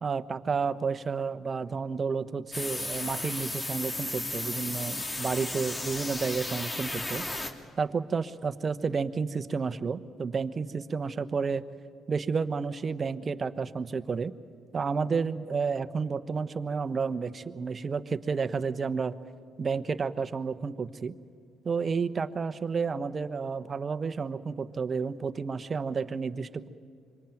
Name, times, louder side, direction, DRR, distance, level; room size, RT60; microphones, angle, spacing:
voice 1, 0.0-7.2 7.8-11.6 12.1-14.3 14.7-19.2 19.6-21.1 21.6-26.7, right 5 dB, 40° right, 13 dB, 1.1 m, -31 dB
sound 1, 2.5-7.5, left 2 dB, 25° left, 2.8 m, -34 dB
25.5 x 24.0 x 9.1 m, 2.1 s
hypercardioid pair, 55°, 0 cm